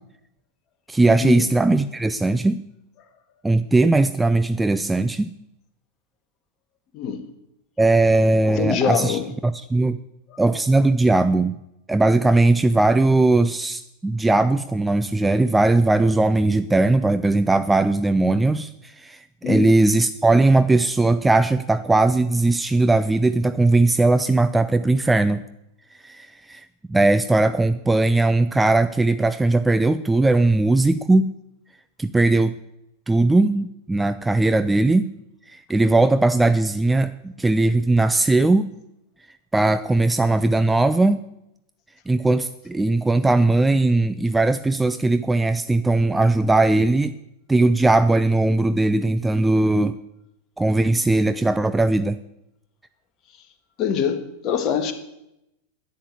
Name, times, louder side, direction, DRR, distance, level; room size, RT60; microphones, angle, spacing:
voice 1, 0.9-2.6 3.4-5.3 7.8-10.0 10.4-11.6 11.9-19.2 19.5-25.4 26.0-31.3 32.0-32.5 33.1-35.1 35.5-38.7 39.5-41.2 42.1-47.1 47.5-50.0 50.6-52.2, right 2 dB, 10° right, 12 dB, 0.4 m, -19 dB
voice 2, 6.9-7.3 8.5-9.2 19.4-19.7 53.8-54.9, left 7 dB, 35° left, 8 dB, 1.6 m, -23 dB
11.0 x 9.3 x 8.2 m, 0.86 s
figure-of-eight pair, 90°, 0 cm